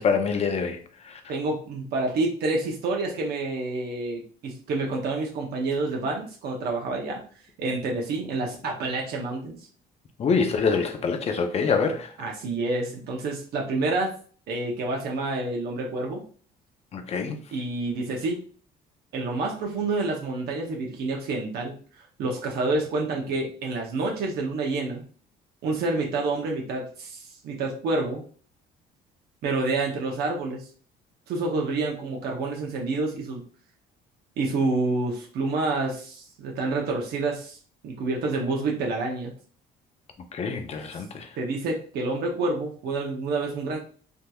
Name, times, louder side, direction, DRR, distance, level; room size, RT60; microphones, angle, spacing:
voice 1, 0.0-1.2 10.2-12.1 16.9-17.4 40.3-41.3, left 5 dB, 40° left, 0.6 m, -25 dB
voice 2, 1.3-7.2 7.6-9.6 12.2-14.1 14.5-16.2 17.5-18.4 19.1-25.0 25.6-28.2 29.4-30.7 31.3-33.4 34.4-37.6 37.8-39.3 41.4-43.8, right 3 dB, 70° right, 0.8 m, -28 dB
3.5 x 2.8 x 2.3 m
cardioid pair, 110°, 17 cm